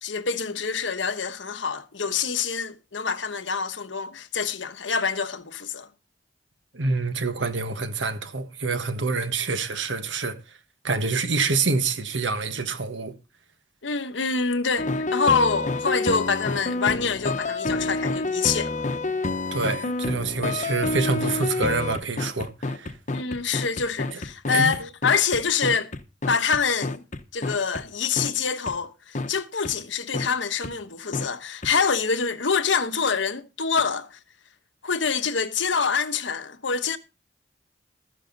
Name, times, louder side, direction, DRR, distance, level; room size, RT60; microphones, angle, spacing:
voice 1, 0.0-5.9 13.8-18.8 23.1-25.9 26.3-27.0 27.3-34.2 34.8-37.0, left 5 dB, 80° left, 1.2 m, -26 dB
voice 2, 6.7-10.4 10.8-13.1 19.5-22.9 24.5-24.7, right 3 dB, 80° right, 1.5 m, -26 dB
sound 1, 14.8-27.8 28.2-28.3 28.7-28.8 29.1-29.3 29.6-29.7 30.1-30.3 30.6-30.7 31.1-31.3 31.6-31.7, left 2 dB, 40° left, 1.0 m, -28 dB
14.0 x 10.0 x 4.0 m
head